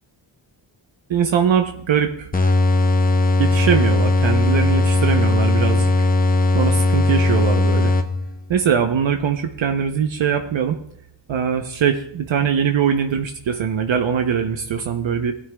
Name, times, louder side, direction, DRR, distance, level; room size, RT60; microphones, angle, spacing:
voice 1, 1.1-2.3 3.4-6.1 6.5-8.0 8.5-10.8 11.3-15.3, right 7 dB, 70° right, 5 dB, 0.8 m, -21 dB
sound 1, 2.3-8.4, left 2 dB, 20° left, 0.8 m, -18 dB
19.0 x 9.6 x 2.2 m, 0.75 s
wide cardioid pair, 110°, 47 cm